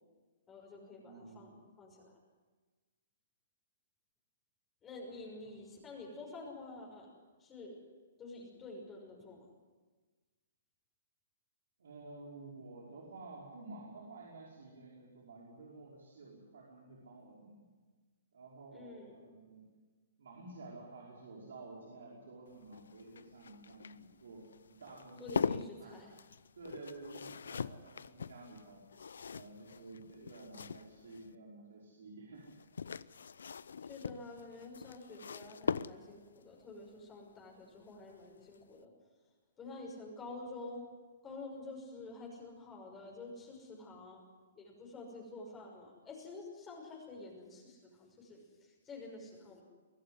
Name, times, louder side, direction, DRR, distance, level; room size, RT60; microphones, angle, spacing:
voice 1, 0.5-2.1 4.8-7.1 7.4-7.8 8.2-9.5 18.7-19.2 25.2-26.1 33.8-38.9 39.6-40.9 41.2-44.2 44.6-49.6, left 2 dB, 20° left, -1 dB, 5.8 m, -49 dB
voice 2, 1.0-1.6 11.8-17.7 18.3-19.6 20.2-24.4 24.7-26.0 26.5-28.8 29.3-32.5, right 3 dB, 75° right, -3 dB, 5.2 m, -51 dB
sound 1, 22.5-31.3 32.4-36.4 38.0-38.3 38.6-38.7, left 6 dB, 80° left, 0.7 m, -41 dB
23.5 x 14.5 x 9.8 m, 1.3 s
hypercardioid pair, 135°, 0 cm